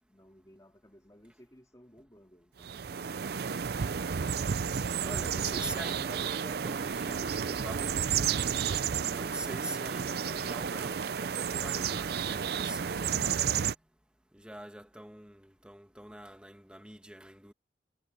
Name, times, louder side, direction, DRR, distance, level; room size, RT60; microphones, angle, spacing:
voice 1, 0.1-4.1, equal, 20° left, 3.2 m, -59 dB
sound 1, 2.6-13.7, right 7 dB, 55° right, 0.5 m, -32 dB
voice 2, 4.7-8.5 9.0-13.2 14.3-17.5, right 1 dB, 5° right, 1.8 m, -44 dB
head